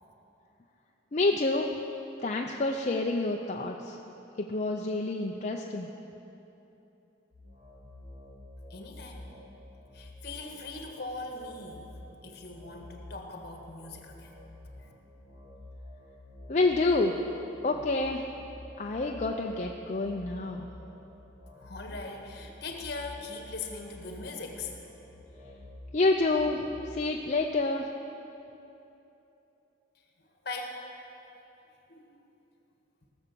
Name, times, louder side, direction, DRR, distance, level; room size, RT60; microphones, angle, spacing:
voice 1, 1.1-1.7 2.2-4.0 4.4-5.9 16.5-17.2 17.6-18.2 18.8-20.7 25.9-27.9, left 2 dB, 40° left, 1 dB, 0.5 m, -28 dB
sound 1, 7.3-26.9, left 1 dB, 40° right, 2.7 m, -49 dB
voice 2, 8.7-9.3 9.9-11.9 12.2-14.3 14.7-14.9 21.6-24.9 30.2-30.8 31.9-32.2, left 3 dB, 60° left, 2 dB, 1.6 m, -41 dB
17.5 x 7.1 x 6.8 m, 3.0 s
head